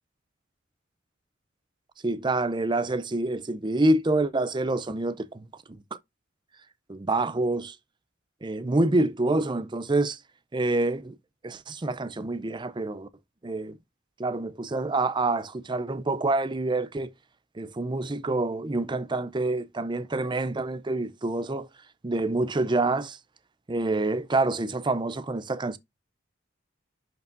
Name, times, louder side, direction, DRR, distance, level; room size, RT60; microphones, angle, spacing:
voice 1, 2.0-5.5 6.9-7.8 8.4-10.2 10.5-11.1 11.4-13.1 13.4-13.8 14.2-17.1 17.6-21.7 22.0-23.2 23.7-25.8, right 2 dB, 25° right, 0.5 m, -27 dB
10.5 x 4.7 x 2.6 m
head